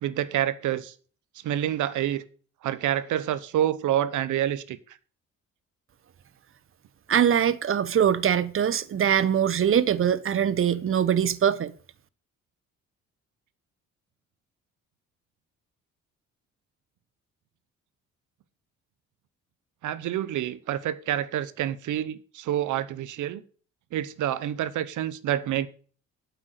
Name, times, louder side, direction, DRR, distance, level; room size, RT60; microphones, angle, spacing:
voice 1, 0.0-0.9 1.3-2.2 2.6-5.0 19.8-23.4 23.9-25.7, right 11 dB, 80° right, 1.0 m, -28 dB
voice 2, 7.1-11.7, right 9 dB, 45° right, 0.9 m, -22 dB
8.9 x 8.1 x 6.7 m
cardioid pair, 90°, 30 cm